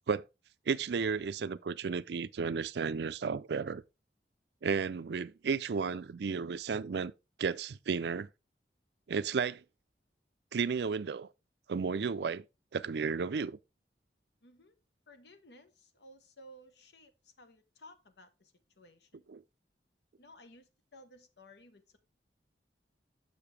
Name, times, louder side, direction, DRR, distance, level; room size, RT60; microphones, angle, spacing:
voice 1, 0.7-3.8 4.6-7.1 7.4-8.3 9.1-9.6 10.5-11.3 11.7-12.4 12.7-13.6 19.3-19.4, right 5 dB, 70° right, 0.4 m, -33 dB
voice 2, 14.4-14.7 15.1-19.3 20.2-22.0, left 1 dB, 75° left, 1.1 m, -57 dB
6.8 x 6.4 x 3.3 m
head